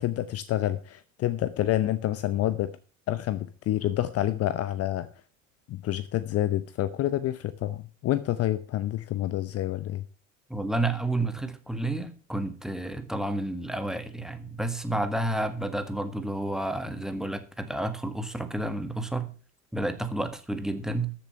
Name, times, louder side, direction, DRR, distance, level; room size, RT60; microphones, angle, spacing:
voice 1, 0.0-2.7 3.1-5.1 5.7-10.0, left 13 dB, 40° left, 14 dB, 0.8 m, -28 dB
voice 2, 10.5-19.3 19.7-21.1, right 1 dB, ahead, 9 dB, 1.6 m, -30 dB
13.5 x 7.2 x 5.7 m, 0.38 s
figure-of-eight pair, 65°, 39 cm